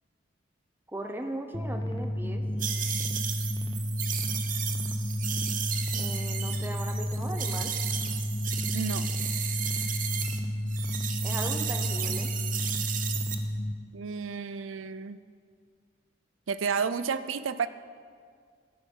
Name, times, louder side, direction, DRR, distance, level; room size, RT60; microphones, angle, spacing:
voice 1, 0.9-2.4 5.9-7.7 11.2-12.3, right 1 dB, 10° right, 5 dB, 0.8 m, -38 dB
sound 1, 1.5-13.7, left 1 dB, 20° left, 0.8 m, -31 dB
sound 2, 2.6-10.4 10.7-13.4, right 9 dB, 40° right, 0.8 m, -34 dB
voice 2, 8.7-9.1 13.9-15.2 16.5-17.7, right 6 dB, 85° right, 14 dB, 0.5 m, -31 dB
13.0 x 10.5 x 5.5 m, 2.1 s
head